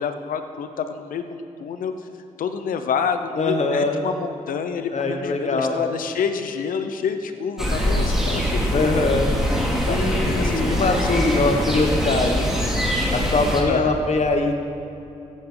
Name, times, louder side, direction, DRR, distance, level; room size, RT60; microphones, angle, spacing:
voice 1, 0.0-2.1 2.4-9.1 9.8-11.0 11.2-11.4 13.7-14.0, left 6 dB, 80° left, 8 dB, 0.8 m, -28 dB
voice 2, 3.4-4.1 4.9-5.8 8.7-9.3 9.9-12.8 13.1-14.6, left 2 dB, 55° left, 4 dB, 1.4 m, -22 dB
sound 1, 7.6-13.6, equal, 5° right, 2.5 m, -23 dB
15.0 x 9.1 x 3.9 m, 2.8 s
cardioid pair, 60°, 14 cm